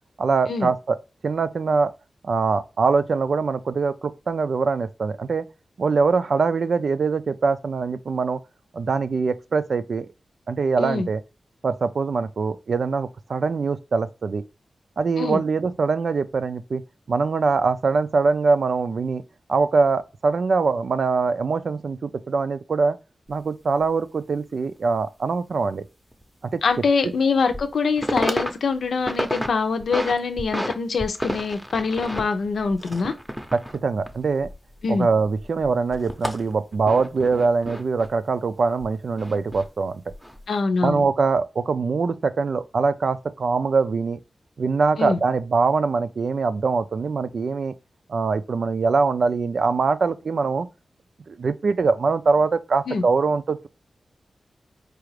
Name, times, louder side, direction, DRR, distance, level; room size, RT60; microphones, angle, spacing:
voice 1, 0.2-1.0 1.2-1.9 2.2-5.5 5.8-8.4 8.7-10.1 10.5-11.2 11.6-14.4 15.0-16.8 17.1-19.2 19.5-23.0 23.3-25.8 26.5-26.6 27.0-27.1 33.5-34.5 34.9-40.1 40.8-44.2 44.6-47.7 48.1-50.7 51.3-53.7, right 4 dB, 65° right, 0.4 m, -23 dB
sound 1, 23.3-23.4 23.8-23.9 26.1-26.2 26.7-26.8 27.3-27.7 28.0-28.5 28.8-29.5 29.8-30.7 31.0-35.0 35.2-38.1 38.8-39.7 40.1-40.4, equal, 5° right, 0.7 m, -30 dB
voice 2, 26.6-33.1 34.8-35.1 40.5-41.0 45.0-45.2 52.9-53.0, left 4 dB, 85° left, 0.6 m, -24 dB
4.8 x 2.5 x 3.1 m
wide cardioid pair, 125°, 0 cm